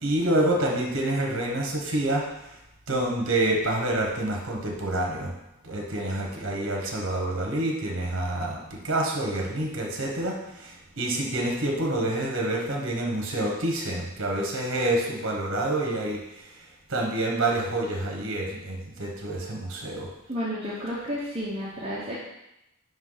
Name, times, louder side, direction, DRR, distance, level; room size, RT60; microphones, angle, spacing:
voice 1, 0.0-2.5 2.9-5.3 5.6-16.5 16.9-20.1, right 1 dB, 60° right, 0 dB, 1.1 m, -27 dB
voice 2, 20.3-22.1, equal, 25° right, -7 dB, 0.9 m, -31 dB
5.4 x 4.6 x 3.9 m, 0.89 s
head